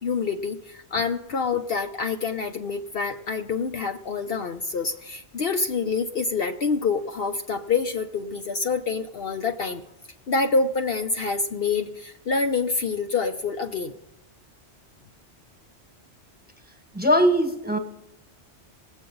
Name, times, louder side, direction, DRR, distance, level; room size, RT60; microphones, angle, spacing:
voice 1, 0.0-9.8 10.3-13.9, left 4 dB, 60° left, 5 dB, 0.9 m, -26 dB
voice 2, 16.9-17.8, equal, 10° right, 4 dB, 1.4 m, -20 dB
20.0 x 8.2 x 3.9 m, 0.87 s
omnidirectional pair, 1.2 m